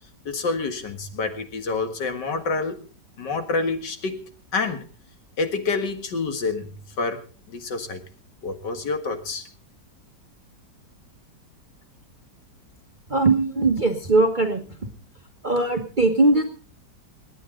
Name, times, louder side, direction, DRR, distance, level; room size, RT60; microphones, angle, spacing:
voice 1, 0.3-2.8 3.2-4.8 5.4-6.7 7.0-8.0 8.4-9.4, left 4 dB, 75° left, 7 dB, 2.4 m, -28 dB
voice 2, 13.1-14.6 15.4-16.4, right 2 dB, 30° right, 5 dB, 1.3 m, -20 dB
28.5 x 9.6 x 3.8 m, 0.38 s
omnidirectional pair, 1.9 m